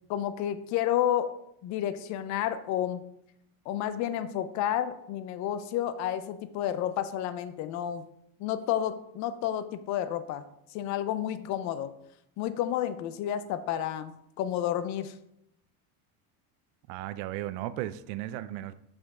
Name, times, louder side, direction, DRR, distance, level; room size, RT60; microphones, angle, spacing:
voice 1, 0.1-1.4 1.6-3.1 3.7-8.1 8.4-10.4 10.7-11.9 12.4-15.2, left 11 dB, 45° left, 13 dB, 0.4 m, -31 dB
voice 2, 16.9-18.7, right 14 dB, 75° right, 15 dB, 0.5 m, -35 dB
5.9 x 5.1 x 3.6 m, 0.79 s
cardioid pair, 155°, 40 cm